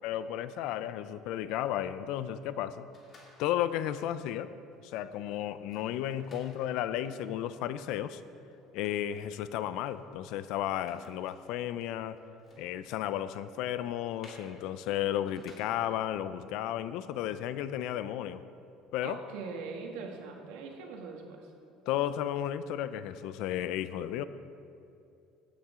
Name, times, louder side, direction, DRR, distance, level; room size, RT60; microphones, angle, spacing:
voice 1, 0.0-2.9 3.4-4.5 4.8-8.2 8.7-12.2 12.6-18.4 18.9-19.2 21.9-24.2, left 11 dB, 70° left, 13 dB, 0.5 m, -33 dB
sound 1, 2.9-3.8 4.3-4.4 4.7-16.1, left 2 dB, 35° left, 2.3 m, -60 dB
voice 2, 19.0-21.5, right 4 dB, 85° right, 1 dB, 1.7 m, -41 dB
16.0 x 8.7 x 3.7 m, 2.6 s
cardioid pair, 135°, 0 cm